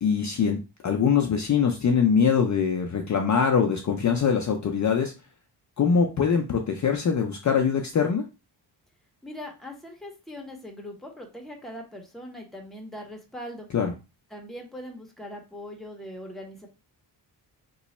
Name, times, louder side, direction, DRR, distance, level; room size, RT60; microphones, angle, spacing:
voice 1, 0.0-0.6 0.8-5.1 5.8-8.3 13.7-13.9, left 6 dB, 40° left, 3 dB, 0.5 m, -23 dB
voice 2, 9.2-13.7 14.3-16.7, equal, ahead, 1 dB, 0.8 m, -40 dB
3.0 x 2.3 x 4.1 m, 0.29 s
wide cardioid pair, 125°, 46 cm